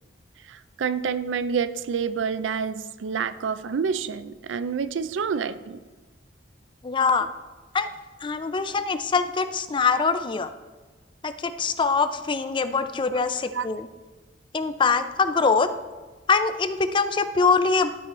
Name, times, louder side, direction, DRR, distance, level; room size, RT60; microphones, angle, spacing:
voice 1, 0.5-5.8 13.5-13.7, right 6 dB, 85° right, 14 dB, 0.4 m, -28 dB
voice 2, 6.8-7.3 7.7-7.9 8.2-10.5 11.2-13.9 14.5-15.7 16.3-17.9, left 4 dB, 25° left, 11 dB, 0.4 m, -23 dB
11.5 x 4.6 x 4.2 m, 1.2 s
head